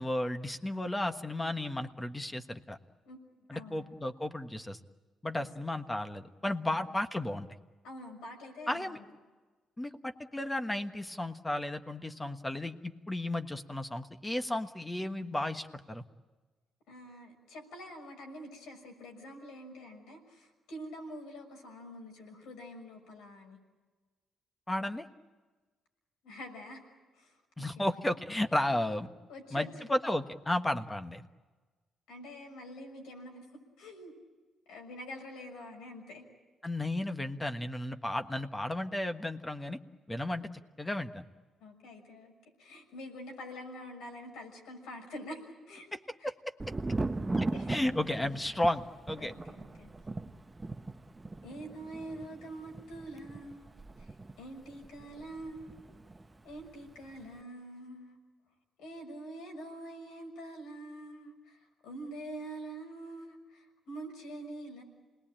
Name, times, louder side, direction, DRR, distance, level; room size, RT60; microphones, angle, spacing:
voice 1, 0.0-2.8 3.5-4.8 5.2-7.5 8.7-9.0 9.8-16.0 24.7-25.1 27.6-29.1 29.5-31.2 36.6-39.8 40.1-40.5 40.8-41.2 46.2-46.3 47.4-49.3, left 1 dB, 15° left, 7 dB, 1.4 m, -33 dB
voice 2, 3.0-3.9 5.3-5.5 7.8-9.1 16.9-23.6 26.2-26.8 27.1-27.9 29.3-29.7 32.1-34.1 34.7-36.2 41.6-42.3 42.6-45.9 46.2-46.3 47.3-47.9 49.2-49.9 51.4-53.7 54.0-54.1 54.4-55.8 56.4-58.2 58.8-64.8, equal, 90° left, 2 dB, 6.2 m, -46 dB
Thunder, 46.6-56.2 56.5-57.2, right 2 dB, 20° right, 0.8 m, -39 dB
28.0 x 20.0 x 8.9 m, 1.3 s
cardioid pair, 90°, 0 cm